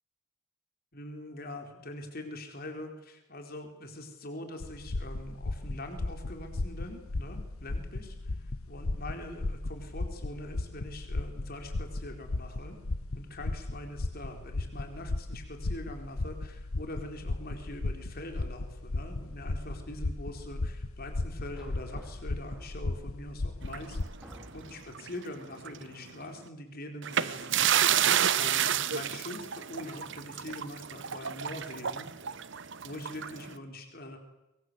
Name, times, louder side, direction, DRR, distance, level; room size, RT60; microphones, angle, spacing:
voice 1, 0.9-8.1 8.7-12.8 13.1-24.0 24.5-32.1 32.8-34.2, left 1 dB, 45° left, 4 dB, 4.4 m, -43 dB
sound 1, 4.6-24.0, left 2 dB, 80° left, 1.0 m, -36 dB
sound 2, 21.5-23.0 23.7-23.8 24.2-25.1, equal, 5° right, 3.6 m, -51 dB
sound 3, 23.7-25.2 25.6-25.8 27.0-33.5, right 9 dB, 55° right, 1.0 m, -30 dB
24.0 x 23.0 x 8.1 m, 0.98 s
head